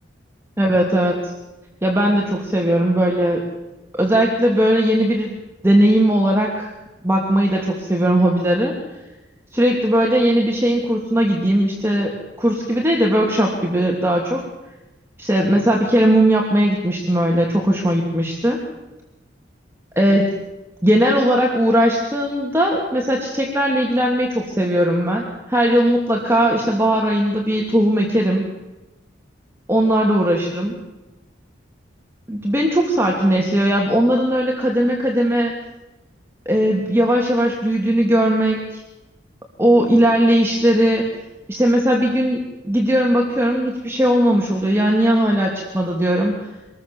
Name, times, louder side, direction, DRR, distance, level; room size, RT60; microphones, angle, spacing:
voice 1, 0.6-1.3 1.8-3.5 3.9-5.4 5.6-6.7 7.0-8.8 9.5-14.4 15.2-18.6 20.0-20.4 20.8-28.5 29.7-30.7 32.3-35.5 36.5-38.8 39.6-41.1 41.5-46.3, right 1 dB, 15° right, 0 dB, 2.8 m, -18 dB
26.0 x 21.0 x 7.1 m, 1.1 s
head